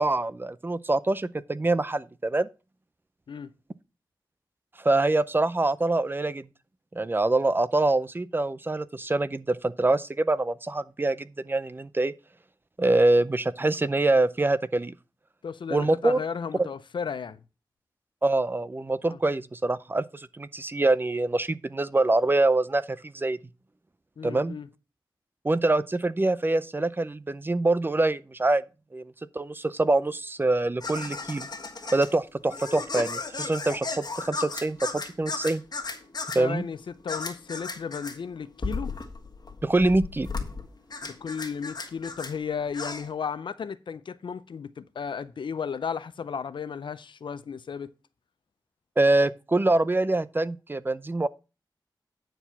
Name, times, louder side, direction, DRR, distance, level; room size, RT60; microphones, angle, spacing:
voice 1, 0.0-2.5 4.8-6.5 6.9-12.1 12.8-14.9 15.7-16.2 16.6-16.7 18.2-23.4 24.2-24.5 25.4-28.6 28.9-31.5 31.9-35.6 36.3-36.6 39.6-40.3 49.0-51.3, right 2 dB, 25° right, 0.5 m, -25 dB
voice 2, 15.4-17.4 19.1-19.2 24.2-24.7 36.4-39.0 41.0-47.9, left 6 dB, 85° left, 0.5 m, -34 dB
sound 1, 30.8-43.1, left 3 dB, 55° left, 1.4 m, -35 dB
9.0 x 4.6 x 5.5 m
wide cardioid pair, 80°, 8 cm